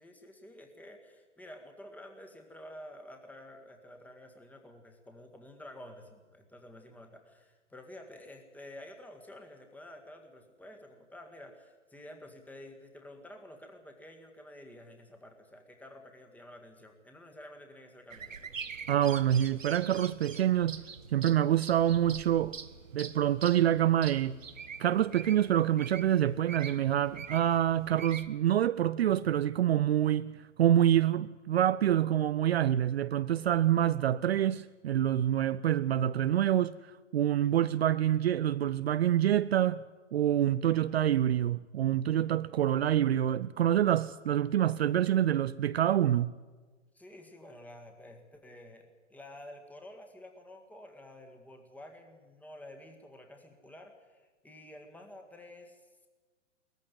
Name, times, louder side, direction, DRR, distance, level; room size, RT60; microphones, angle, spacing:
voice 1, 0.0-18.5 46.9-56.1, left 1 dB, 5° left, 1.8 m, -50 dB
sound 1, 18.1-28.3, right 6 dB, 80° right, 1.1 m, -45 dB
voice 2, 18.9-20.8 21.1-22.6 22.9-24.4 24.8-39.8 40.1-46.3, right 11 dB, 55° right, 0.5 m, -26 dB
19.0 x 14.5 x 9.6 m
figure-of-eight pair, 120°, 38 cm